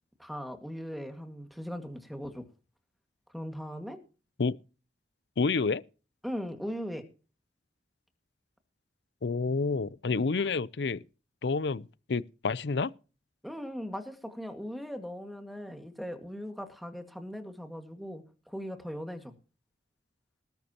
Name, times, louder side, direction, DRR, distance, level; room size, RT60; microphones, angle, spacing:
voice 1, 0.2-2.5 3.3-4.0 6.2-7.0 13.4-19.3, equal, ahead, 2.0 m, -39 dB
voice 2, 5.4-5.8 9.2-11.0 11.4-12.9, left 4 dB, 70° left, 0.6 m, -29 dB
19.5 x 10.5 x 3.0 m
head